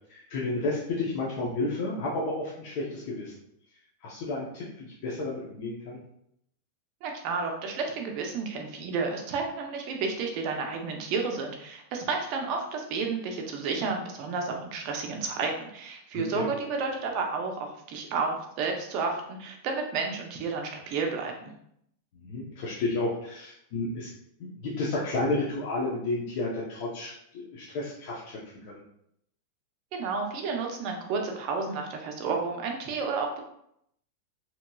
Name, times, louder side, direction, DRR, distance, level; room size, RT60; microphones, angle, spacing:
voice 1, 0.1-3.3 4.0-6.0 16.1-16.5 22.2-24.1 24.4-28.8, left 2 dB, 50° left, -5 dB, 0.6 m, -32 dB
voice 2, 7.0-21.5 29.9-33.4, right 4 dB, 45° right, 2 dB, 0.6 m, -31 dB
2.9 x 2.7 x 2.2 m, 0.73 s
supercardioid pair, 150°, 0 cm